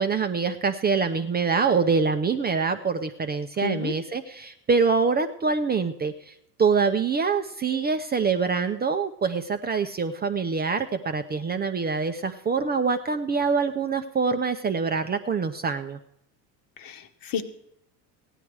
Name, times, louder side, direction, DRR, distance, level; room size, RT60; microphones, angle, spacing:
voice 1, 0.0-6.3 6.6-16.0, right 5 dB, 20° right, 7 dB, 0.6 m, -25 dB
voice 2, 3.6-3.9 16.8-17.4, left 7 dB, 45° left, 8 dB, 1.3 m, -31 dB
15.5 x 10.0 x 4.7 m, 0.76 s
hypercardioid pair, 90°, 47 cm